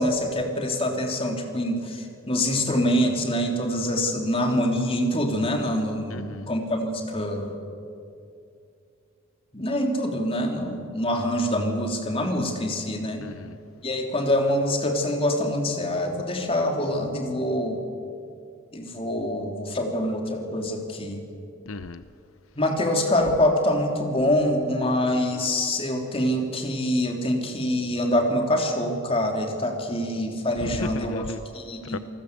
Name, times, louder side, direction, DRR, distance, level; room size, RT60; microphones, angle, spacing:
voice 1, 0.0-7.5 9.5-13.2 13.8-17.8 18.7-21.2 22.6-31.2 31.5-32.0, left 1 dB, 30° left, 2 dB, 3.2 m, -25 dB
voice 2, 6.1-6.5 13.2-13.6 21.7-22.0 30.6-31.4 31.9-32.0, left 3 dB, 85° left, 12 dB, 0.8 m, -34 dB
29.0 x 19.0 x 8.3 m, 2.5 s
head